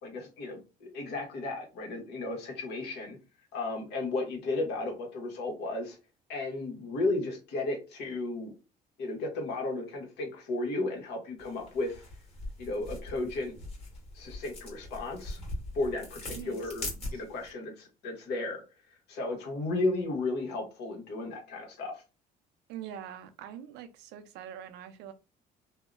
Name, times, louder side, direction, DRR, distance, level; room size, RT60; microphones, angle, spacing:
voice 1, 0.0-3.2 3.5-6.0 6.3-8.5 9.0-12.0 12.6-13.5 14.1-15.4 15.7-16.9 17.1-18.6 19.1-22.0, left 2 dB, 80° left, 1.0 m, -34 dB
sound 1, 11.4-17.5, left 1 dB, 35° left, 1.3 m, -42 dB
voice 2, 16.3-17.2 22.7-25.1, right 9 dB, 90° right, 0.5 m, -44 dB
2.7 x 2.0 x 2.4 m
cardioid pair, 110°, 17 cm